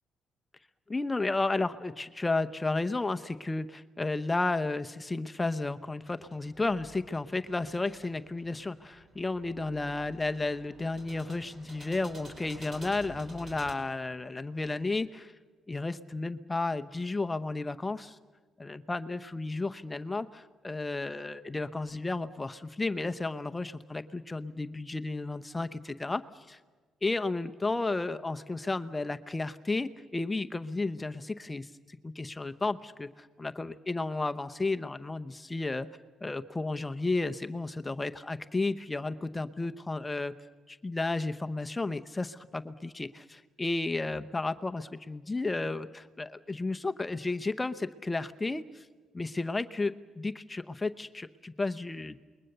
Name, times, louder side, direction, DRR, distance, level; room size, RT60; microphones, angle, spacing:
voice 1, 0.9-15.3 15.7-18.2 18.6-26.6 27.0-35.9 36.2-40.3 40.7-48.9 49.1-52.2, left 3 dB, 20° left, 10 dB, 0.8 m, -33 dB
sound 1, 6.0-13.7, equal, 30° right, 4.8 m, -51 dB
28.5 x 21.5 x 6.8 m, 1.3 s
cardioid pair, 90°, 0 cm